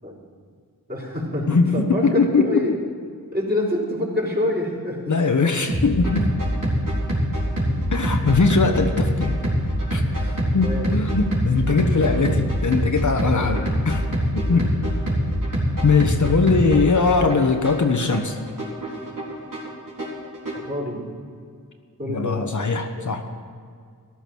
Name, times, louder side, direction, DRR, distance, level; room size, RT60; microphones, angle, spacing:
voice 1, 0.9-1.5 1.7-2.7 3.3-5.0 7.7-7.8 10.0-10.9 14.5-14.6 20.5-21.0 22.0-22.7 23.0-23.1, left 1 dB, 30° right, -3 dB, 4.4 m, -27 dB
voice 2, 1.5-2.6 5.1-6.3 7.9-9.4 9.9-10.0 10.5-14.0 14.3-14.7 15.8-18.4 22.0-23.2, left 4 dB, 60° left, 4 dB, 1.2 m, -20 dB
sound 1, 5.7-20.7, equal, 65° right, 3.9 m, -24 dB
14.0 x 11.5 x 6.2 m, 2.2 s
wide cardioid pair, 60°, 34 cm